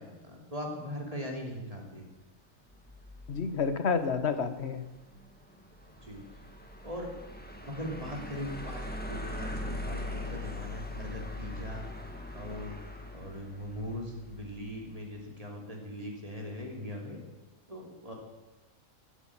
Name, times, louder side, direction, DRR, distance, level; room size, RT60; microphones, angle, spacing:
voice 1, 0.0-2.1 6.0-6.2 6.8-7.1 7.7-11.9 12.3-12.7 13.1-17.2 17.7-18.1, equal, 25° right, 0 dB, 3.3 m, -40 dB
sound 1, 2.7-14.9, left 1 dB, 5° left, 1.6 m, -41 dB
voice 2, 3.3-4.9, left 5 dB, 55° left, 10 dB, 1.4 m, -29 dB
14.5 x 8.9 x 8.8 m, 1.1 s
omnidirectional pair, 1.4 m